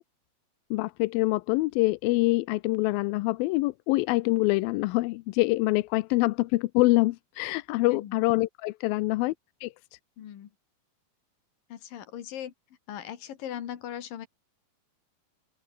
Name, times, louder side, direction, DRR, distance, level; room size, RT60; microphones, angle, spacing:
voice 1, 0.7-9.3 9.6-9.7, left 21 dB, 90° left, 2.4 m, -25 dB
voice 2, 7.9-8.2 10.2-10.5 11.7-12.5 12.9-14.3, left 10 dB, 75° left, 3.6 m, -39 dB
open air
omnidirectional pair, 4.1 m